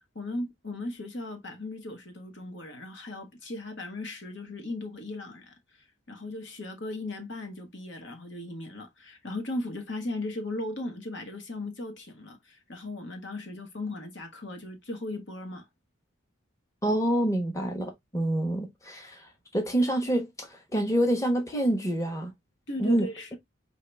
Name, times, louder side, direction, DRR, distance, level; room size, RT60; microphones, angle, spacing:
voice 1, 0.0-5.5 6.1-15.7 22.7-23.4, left 2 dB, 60° left, 1.3 m, -37 dB
voice 2, 16.8-19.3 19.5-22.3 22.8-23.1, right 1 dB, 15° left, 1.0 m, -27 dB
4.8 x 2.8 x 3.4 m
head